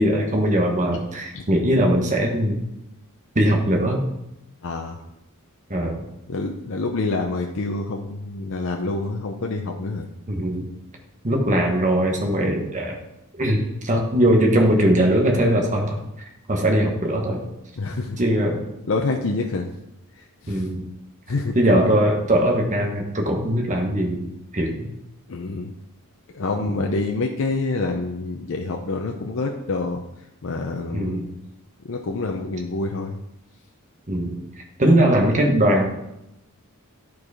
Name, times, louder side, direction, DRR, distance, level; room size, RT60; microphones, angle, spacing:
voice 1, 0.0-2.6 3.3-4.0 5.7-6.0 10.3-10.6 11.2-13.0 13.3-16.0 16.5-17.4 18.2-18.6 20.5-20.8 21.5-24.2 24.5-24.9 26.7-26.9 30.9-31.3 34.1-34.3 34.8-35.9, right 1 dB, 35° right, 1 dB, 1.3 m, -20 dB
voice 2, 4.6-5.0 6.3-10.1 17.8-18.2 18.9-19.7 20.4-20.7 21.3-21.5 25.3-25.7 26.3-30.0 30.4-31.2 31.9-33.2, left 3 dB, 60° left, 2 dB, 0.6 m, -27 dB
11.0 x 4.7 x 4.9 m, 0.86 s
head